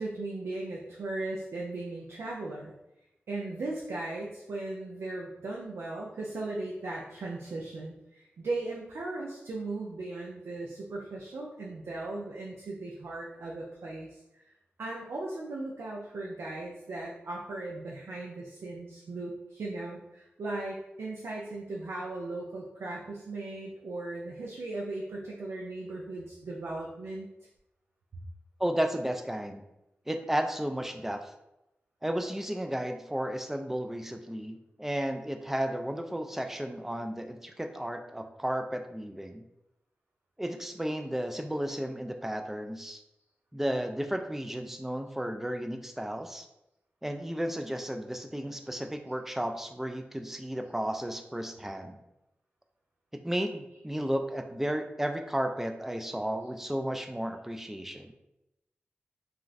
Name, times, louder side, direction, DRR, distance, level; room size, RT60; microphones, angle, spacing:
voice 1, 0.0-2.7 3.3-14.2 14.8-27.3, right 2 dB, 90° right, -3 dB, 0.4 m, -37 dB
voice 2, 28.6-29.6 30.1-31.3 32.0-39.4 40.4-43.0 43.5-46.5 47.0-52.0 53.1-58.1, right 1 dB, 10° right, 5 dB, 0.3 m, -33 dB
2.4 x 2.4 x 3.1 m, 0.88 s
wide cardioid pair, 70°, 4 cm